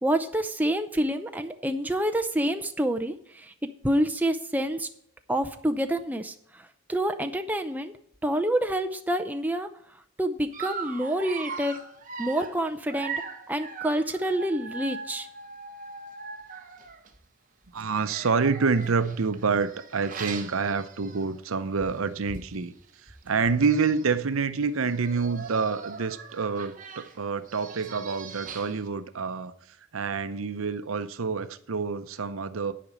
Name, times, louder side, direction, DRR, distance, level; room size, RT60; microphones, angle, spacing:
voice 1, 0.0-4.9 5.3-6.6 6.9-7.9 8.2-9.7 10.2-11.8 12.2-13.2 13.5-15.3, right 1 dB, 10° right, 0.6 m, -27 dB
Dog, 10.5-17.1 17.9-21.5 21.9-22.1 22.4-22.5 23.3-23.4 23.6-24.2 24.8-28.9, right 5 dB, 40° right, 1.1 m, -40 dB
voice 2, 17.7-22.7 23.3-29.5 29.9-32.7, right 5 dB, 75° right, 0.7 m, -27 dB
10.0 x 5.1 x 8.2 m
head